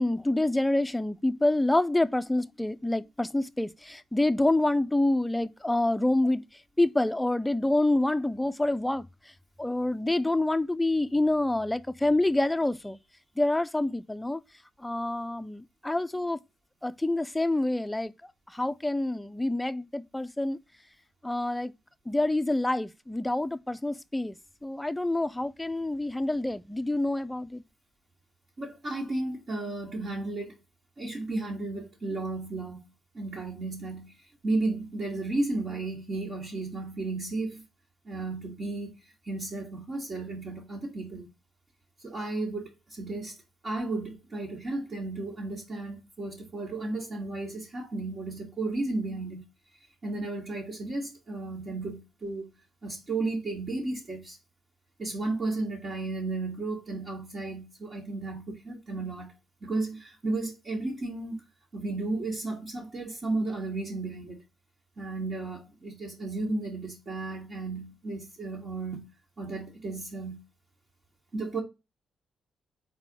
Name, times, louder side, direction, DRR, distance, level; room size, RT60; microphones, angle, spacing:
voice 1, 0.0-6.4 6.8-9.1 9.6-13.0 13.4-14.4 14.8-16.4 16.8-18.1 18.5-20.6 21.2-21.7 22.1-24.4 24.6-27.6, left 2 dB, 10° left, 0.5 m, -27 dB
voice 2, 28.6-30.5 31.0-32.8 33.1-34.1 34.4-37.7 38.0-38.9 39.2-41.3 42.0-43.4 43.6-49.4 50.0-52.5 52.8-54.4 55.0-59.3 59.6-61.4 61.7-64.4 65.0-69.1 69.4-70.4 71.3-71.6, right 2 dB, 45° right, 2.4 m, -33 dB
4.8 x 4.0 x 5.7 m
cardioid pair, 80°, 0 cm